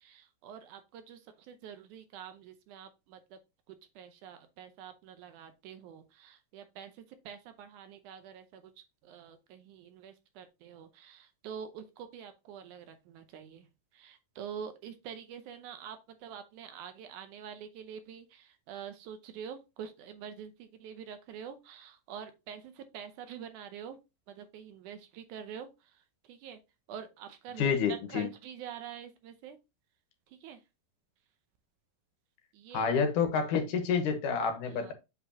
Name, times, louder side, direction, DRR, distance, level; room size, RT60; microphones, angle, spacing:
voice 1, 0.4-0.8 1.1-1.2 1.5-2.9 4.0-6.9 7.3-8.4 9.1-11.2 11.4-12.9 13.1-13.6 14.0-16.0 16.2-18.2 18.7-20.5 20.8-22.6 22.9-24.0 24.4-25.7 26.4-26.6 26.9-27.7 28.1-29.6 30.4-30.6 32.7-32.8, right 8 dB, 75° right, 1.9 m, -45 dB
voice 2, 27.6-28.3 32.7-34.9, left 6 dB, 70° left, 2.5 m, -28 dB
7.8 x 5.0 x 2.8 m
omnidirectional pair, 4.0 m